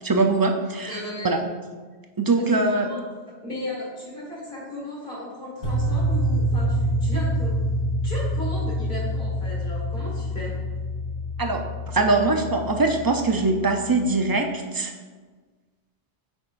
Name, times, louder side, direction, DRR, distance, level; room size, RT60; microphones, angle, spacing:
voice 1, 0.0-1.0 1.2-1.4 2.2-2.9 11.4-14.9, right 3 dB, 35° right, 4 dB, 0.3 m, -22 dB
voice 2, 0.9-1.4 2.3-3.0 3.4-7.6 8.0-10.5, left 1 dB, 50° left, -5 dB, 2.3 m, -35 dB
sound 1, 5.6-13.8, equal, 65° left, 1.7 m, -26 dB
8.6 x 6.2 x 2.5 m, 1.4 s
omnidirectional pair, 1.1 m